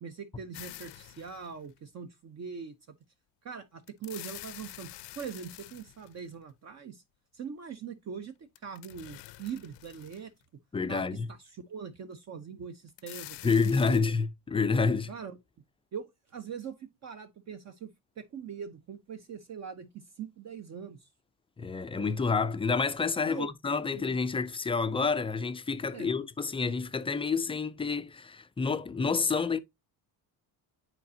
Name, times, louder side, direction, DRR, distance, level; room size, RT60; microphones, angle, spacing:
voice 1, 0.0-2.7 3.4-7.0 7.3-10.3 10.9-14.1 15.1-15.4 15.9-17.9 18.2-21.1 23.3-23.5 23.9-24.3 25.9-26.1, right 6 dB, 40° right, 0.7 m, -42 dB
sound 1, 0.5-1.8 3.9-6.5 8.6-10.4 11.0-11.1 12.9-14.0, left 17 dB, 75° left, 0.6 m, -47 dB
voice 2, 10.7-11.3 13.4-15.1 21.6-29.6, left 4 dB, 15° left, 0.4 m, -28 dB
9.2 x 4.2 x 2.7 m
cardioid pair, 120°, 42 cm